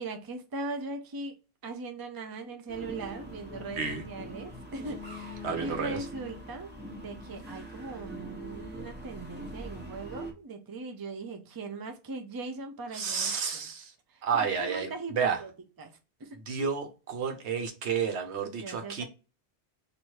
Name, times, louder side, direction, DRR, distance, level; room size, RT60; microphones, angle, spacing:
voice 1, 0.0-1.3 1.6-13.7 14.1-14.2 14.6-15.5 15.8-15.9 16.2-16.3 18.6-19.0, right 3 dB, 30° right, 0.5 m, -39 dB
sound 1, 2.7-10.3, equal, 10° right, 1.0 m, -43 dB
voice 2, 5.4-6.1 12.9-13.9 14.2-15.4 16.5-19.0, right 6 dB, 75° right, 1.1 m, -31 dB
3.1 x 2.7 x 4.4 m
omnidirectional pair, 1.1 m